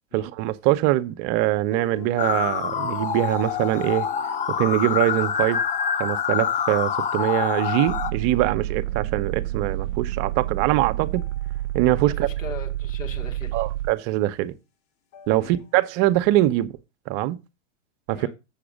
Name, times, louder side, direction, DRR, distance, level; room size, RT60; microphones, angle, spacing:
voice 1, 0.1-4.1 4.6-5.6 6.0-11.2 11.7-12.3 13.5-14.5 15.3-16.7 17.1-17.4 18.1-18.3, right 15 dB, 40° right, 0.8 m, -23 dB
sound 1, 1.7-7.9 11.1-11.7 12.0-12.3 15.1-15.7 16.1-16.2, left 9 dB, 45° left, 1.5 m, -45 dB
sound 2, 2.2-8.1, left 8 dB, 20° left, 0.9 m, -26 dB
sound 3, 7.9-13.9, right 14 dB, 75° right, 0.6 m, -29 dB
voice 2, 12.2-13.7 15.4-15.6 18.1-18.3, left 5 dB, 90° left, 2.8 m, -39 dB
7.2 x 6.8 x 5.1 m
hypercardioid pair, 110°, 37 cm